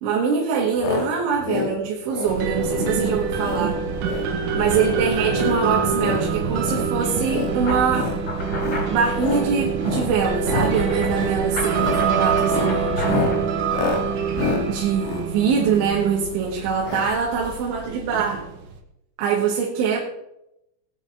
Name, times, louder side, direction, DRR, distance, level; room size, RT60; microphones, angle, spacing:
voice 1, 0.0-3.8 4.5-8.2 8.9-13.3 14.7-18.5 19.2-20.0, right 6 dB, 85° right, -2 dB, 4.2 m, -23 dB
sound 1, 0.8-1.1 1.4-1.7 2.1-2.4 2.7-3.0 3.4-3.7 4.0-4.3 4.6-4.9 5.3-6.2 6.6-6.9 7.2-7.5 7.9-8.2 8.6-8.9 9.2-9.5 9.8-10.1 10.4-10.7 11.1-11.4 11.7-12.0 12.4-16.1 16.8-17.1 17.4-17.5 17.7-17.8, left 4 dB, 85° left, 4.5 m, -28 dB
sound 2, 2.2-18.8, right 6 dB, 70° right, 2.1 m, -26 dB
sound 3, 7.6-13.4, left 2 dB, 30° left, 5.6 m, -31 dB
20.0 x 9.4 x 3.5 m, 0.84 s
omnidirectional pair, 5.2 m